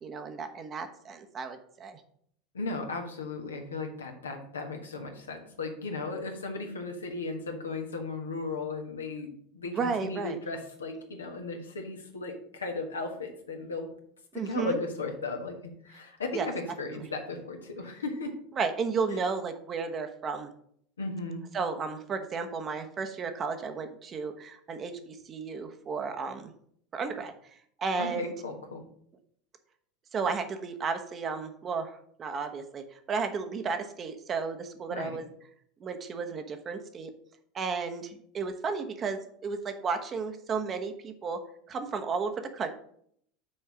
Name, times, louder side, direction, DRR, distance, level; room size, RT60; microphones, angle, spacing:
voice 1, 0.0-2.0 9.7-10.4 14.3-14.8 16.3-16.5 16.9-17.1 18.6-20.5 21.5-26.5 26.9-27.3 27.8-28.3 30.1-35.3 35.8-37.1 37.5-41.4 41.7-42.7, right 5 dB, 30° right, 7 dB, 1.0 m, -33 dB
voice 2, 2.5-13.9 14.3-18.3 21.0-21.4 28.0-28.8 34.9-35.2, left 3 dB, 80° left, 3 dB, 1.3 m, -36 dB
6.4 x 4.6 x 6.2 m, 0.66 s
figure-of-eight pair, 80°, 0 cm